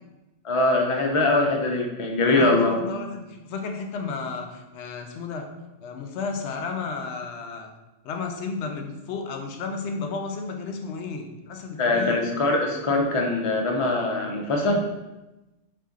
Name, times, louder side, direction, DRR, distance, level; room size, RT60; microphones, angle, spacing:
voice 1, 0.4-2.8 11.8-14.8, left 2 dB, 45° left, 2 dB, 0.4 m, -22 dB
voice 2, 2.3-5.5 5.8-7.7 8.0-12.2, left 4 dB, 70° left, 4 dB, 0.8 m, -33 dB
4.1 x 2.5 x 3.6 m, 1.0 s
omnidirectional pair, 1.2 m